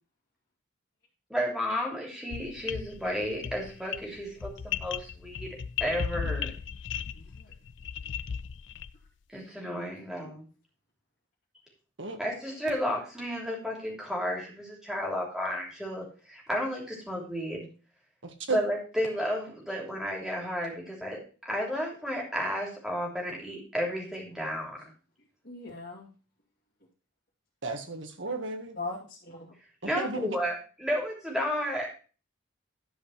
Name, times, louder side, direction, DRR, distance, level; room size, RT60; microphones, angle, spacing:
voice 1, 1.3-5.5 5.8-6.5 9.3-10.5 12.2-17.7 18.5-24.8 29.8-31.9, equal, 5° right, -1 dB, 3.0 m, -32 dB
sound 1, 2.3-9.1, left 7 dB, 65° left, 0.4 m, -36 dB
voice 2, 7.0-7.5 9.9-10.3 25.4-26.1 28.8-29.5, left 3 dB, 50° left, -7 dB, 2.4 m, -41 dB
voice 3, 18.2-18.6 27.6-28.8 29.8-30.3, right 3 dB, 70° right, 5 dB, 1.7 m, -34 dB
11.5 x 4.9 x 5.7 m, 0.36 s
head